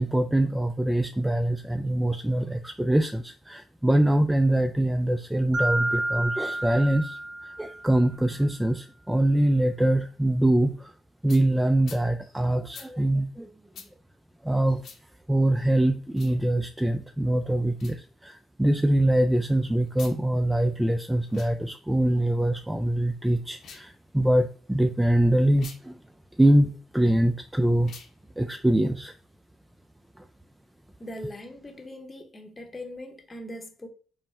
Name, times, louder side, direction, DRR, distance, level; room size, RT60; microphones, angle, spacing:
voice 1, 0.0-10.9 11.2-13.5 14.4-14.9 15.3-26.0 26.4-27.9 28.4-29.1, right 1 dB, 5° right, 0.4 m, -24 dB
Mallet percussion, 5.5-8.1, right 1 dB, 65° right, 0.9 m, -30 dB
sound 1, 11.3-11.4 11.8-12.0 12.7-12.9 13.7-13.9 14.8-15.0 16.1-16.4 17.7-18.0 19.9-20.2 21.2-21.5 23.5-23.9 25.5-25.8 27.8-28.1, left 6 dB, 70° left, 0.9 m, -45 dB
voice 2, 31.0-33.9, left 1 dB, 25° left, 0.9 m, -40 dB
5.3 x 2.1 x 3.4 m
cardioid pair, 90°, 0 cm